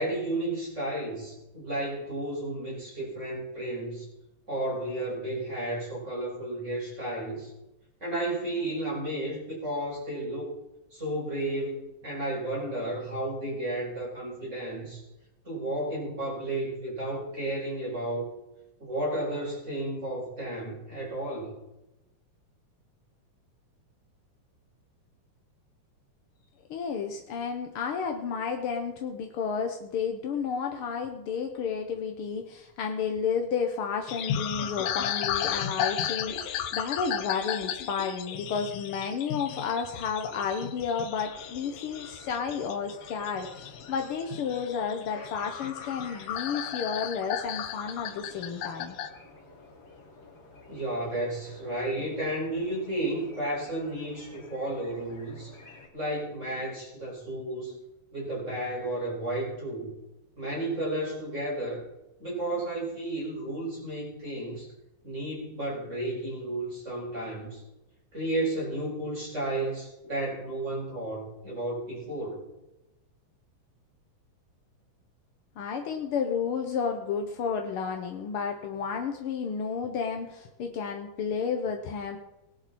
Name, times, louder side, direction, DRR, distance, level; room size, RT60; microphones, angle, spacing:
voice 1, 0.0-4.1 4.5-7.5 8.0-10.5 10.9-15.0 15.4-18.3 18.8-21.5 50.7-55.5 55.9-57.8 58.1-59.9 60.4-61.8 62.2-64.7 65.0-67.6 68.1-72.4, right 1 dB, 20° right, -4 dB, 6.2 m, -32 dB
voice 2, 26.7-49.0 75.6-82.2, left 6 dB, 65° left, 4 dB, 1.4 m, -32 dB
sound 1, 34.1-49.1, left 9 dB, 85° left, 2.6 m, -34 dB
sound 2, 41.1-55.9, left 3 dB, 40° left, 3.6 m, -51 dB
19.0 x 11.0 x 4.3 m, 0.94 s
omnidirectional pair, 3.7 m